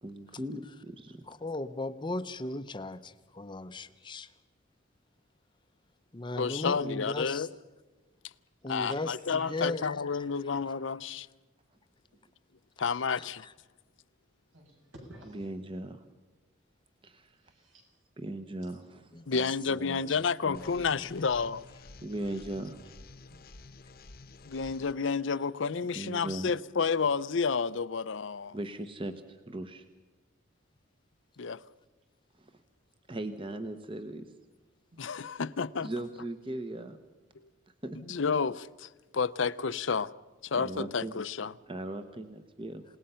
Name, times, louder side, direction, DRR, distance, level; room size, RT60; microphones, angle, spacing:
voice 1, 0.0-1.2 15.2-16.0 17.0-17.4 18.2-19.1 22.0-22.8 25.9-26.5 28.5-29.8 32.4-32.6 33.1-34.3 35.8-37.0 37.8-38.0 40.6-41.1 41.7-42.8, right 1 dB, 25° right, 1.0 m, -38 dB
voice 2, 1.3-4.3 6.1-7.5 8.6-10.0 13.2-13.3 19.1-21.1 21.3-21.5, left 2 dB, 25° left, 0.7 m, -37 dB
voice 3, 6.4-7.5 8.7-11.3 12.8-13.5 19.3-21.6 24.4-28.6 31.4-31.6 35.0-35.9 37.4-37.5 38.0-40.1 40.4-41.5, left 5 dB, 65° left, 0.6 m, -30 dB
voice 4, 14.5-15.4 17.4-17.9 18.6-18.8 19.8-19.9 23.3-23.4 24.5-24.6 34.9-35.0, right 1 dB, 75° right, 7.7 m, -52 dB
sound 1, 20.5-24.9, left 3 dB, 50° left, 1.0 m, -51 dB
28.5 x 18.5 x 5.7 m
head